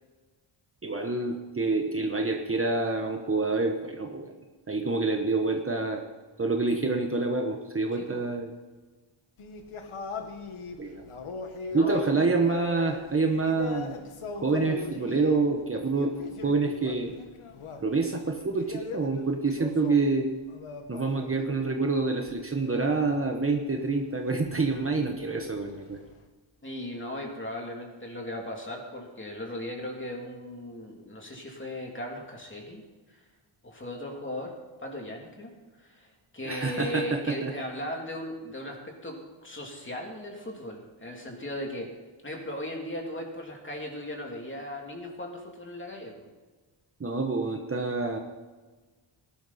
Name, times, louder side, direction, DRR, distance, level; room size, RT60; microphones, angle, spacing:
voice 1, 0.8-4.3 4.7-6.0 6.4-8.5 10.8-11.0 11.7-14.0 14.4-16.1 16.4-17.1 17.8-20.3 20.9-26.0 36.4-37.5 47.0-48.2, right 3 dB, 25° right, 2 dB, 1.2 m, -27 dB
voice 2, 7.9-8.3 11.7-12.0 26.6-32.8 33.1-33.2 33.6-34.5 34.8-35.5 35.8-36.1 36.3-41.9 42.2-46.3, left 1 dB, 25° left, 0 dB, 3.0 m, -37 dB
sound 1, 9.4-21.5 21.8-26.2, left 4 dB, 80° left, 1.6 m, -41 dB
19.0 x 12.0 x 4.3 m, 1.3 s
wide cardioid pair, 135°, 49 cm